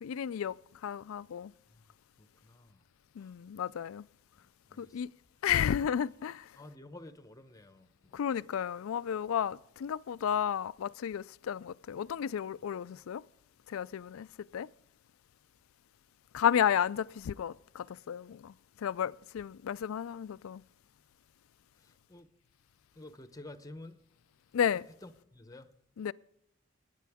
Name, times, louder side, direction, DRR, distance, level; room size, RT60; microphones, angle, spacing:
voice 1, 0.0-0.5 0.8-1.5 3.2-4.0 4.8-5.1 5.4-6.4 8.1-13.2 13.7-14.3 14.5-14.7 16.3-18.5 18.8-20.6 24.5-24.9 26.0-26.1, left 8 dB, 85° left, 0.4 m, -32 dB
voice 2, 2.2-2.8 3.2-3.3 4.7-5.0 6.6-8.2 21.8-22.3 22.9-24.0 24.7-25.7, left 2 dB, 15° left, 0.9 m, -51 dB
18.5 x 9.2 x 3.5 m
head